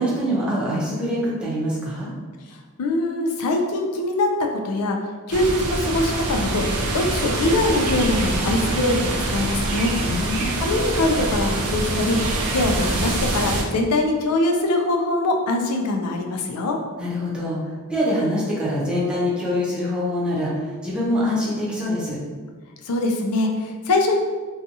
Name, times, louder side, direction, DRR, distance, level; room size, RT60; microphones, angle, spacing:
voice 1, 0.0-2.1 10.0-10.6 17.0-22.2, equal, 5° right, -7 dB, 0.6 m, -24 dB
voice 2, 2.8-5.0 5.3-6.6 6.9-9.9 10.6-12.2 12.5-16.8 22.9-24.2, left 2 dB, 85° left, 3 dB, 0.4 m, -22 dB
sound 1, 5.3-13.6, right 2 dB, 85° right, 0.5 m, -25 dB
2.7 x 2.3 x 2.6 m, 1.5 s
head